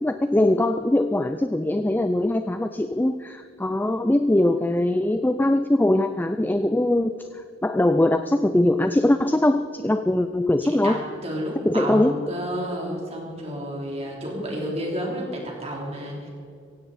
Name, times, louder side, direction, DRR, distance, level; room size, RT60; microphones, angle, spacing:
voice 1, 0.0-7.3 7.6-11.0 11.6-12.1, left 1 dB, 10° left, 10 dB, 0.4 m, -21 dB
voice 2, 10.6-16.3, equal, 35° right, -1 dB, 3.5 m, -31 dB
17.0 x 16.0 x 4.2 m, 2.3 s
head